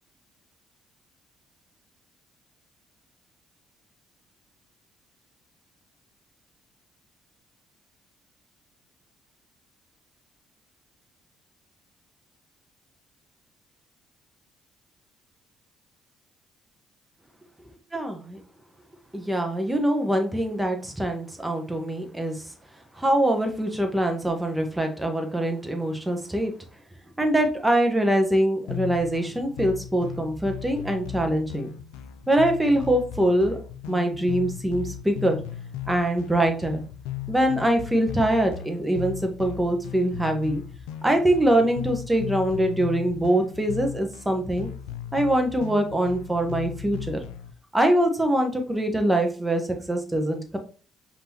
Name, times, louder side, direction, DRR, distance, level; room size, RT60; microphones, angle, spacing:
voice 1, 17.9-18.4 19.1-22.5 22.9-26.5 27.2-31.7 32.3-33.6 33.9-35.4 35.9-36.8 37.3-40.6 41.0-44.7 45.1-47.2 47.7-49.6 49.9-50.6, right 1 dB, 10° right, 4 dB, 1.1 m, -23 dB
sound 1, 28.7-47.5, left 10 dB, 75° left, 0.3 m, -37 dB
5.2 x 2.9 x 2.9 m, 0.38 s
hypercardioid pair, 50°, 0 cm